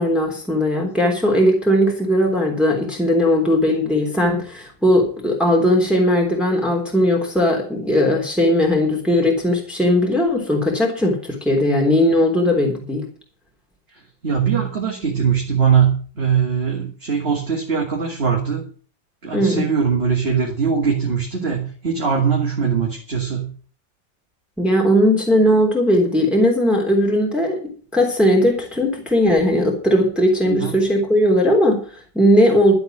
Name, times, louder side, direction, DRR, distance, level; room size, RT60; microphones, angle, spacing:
voice 1, 0.0-13.0 19.3-19.6 24.6-32.8, left 1 dB, ahead, -1 dB, 3.4 m, -18 dB
voice 2, 13.9-18.7 19.2-23.5 30.4-30.8, right 6 dB, 35° right, -1 dB, 2.5 m, -21 dB
12.5 x 7.8 x 7.5 m, 0.41 s
omnidirectional pair, 2.0 m